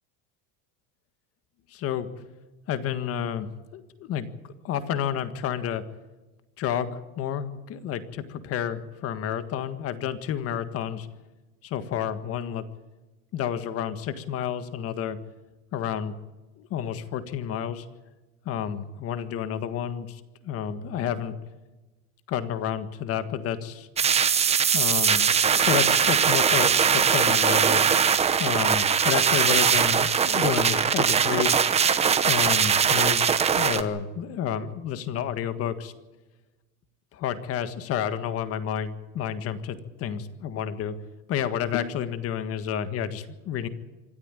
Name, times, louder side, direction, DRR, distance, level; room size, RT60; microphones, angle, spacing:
voice 1, 1.7-2.1 2.7-4.3 4.6-5.8 6.6-11.1 11.6-12.6 13.3-15.2 15.7-16.1 16.6-17.8 18.4-21.3 22.3-23.9 24.7-27.8 28.4-31.6 32.3-35.9 37.1-40.9 41.3-43.7, left 9 dB, 35° left, 11 dB, 1.7 m, -30 dB
sound 1, 24.0-33.8, right 7 dB, 15° right, 0.9 m, -21 dB
25.5 x 13.5 x 9.1 m, 1.1 s
cardioid pair, 170°, 39 cm